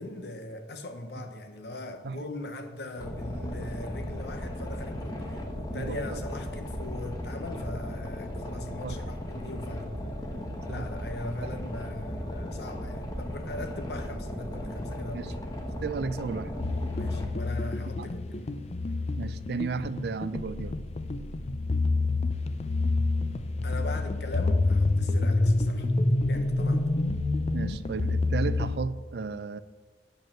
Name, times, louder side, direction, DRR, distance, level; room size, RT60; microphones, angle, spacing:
voice 1, 0.0-9.9 10.7-15.3 16.9-18.5 23.6-25.9 26.3-26.9, left 1 dB, 65° left, 1.0 m, -40 dB
Boat Water vehicle, 3.0-17.2, equal, 20° left, 1.1 m, -36 dB
voice 2, 5.7-6.2 8.8-9.0 10.7-10.9 11.4-11.5 12.9-13.0 15.1-15.3 15.8-16.5 18.0-18.1 19.2-20.8 27.5-29.6, right 4 dB, 60° right, 0.4 m, -33 dB
sound 1, 16.6-28.8, left 2 dB, 35° left, 0.5 m, -27 dB
9.2 x 5.4 x 7.4 m
head